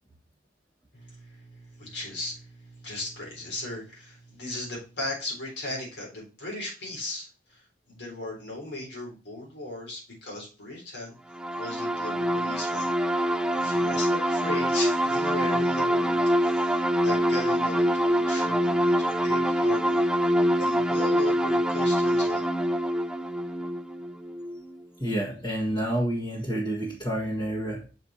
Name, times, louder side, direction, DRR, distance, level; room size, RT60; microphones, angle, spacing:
voice 1, 0.9-11.2 11.6-12.9 13.5-20.3 20.6-22.4, left 2 dB, 75° left, -1 dB, 3.8 m, -37 dB
sound 1, 11.3-24.8, equal, 5° right, 0.3 m, -25 dB
voice 2, 25.0-27.8, right 1 dB, 25° left, -5 dB, 1.8 m, -29 dB
6.4 x 4.7 x 4.2 m, 0.32 s
head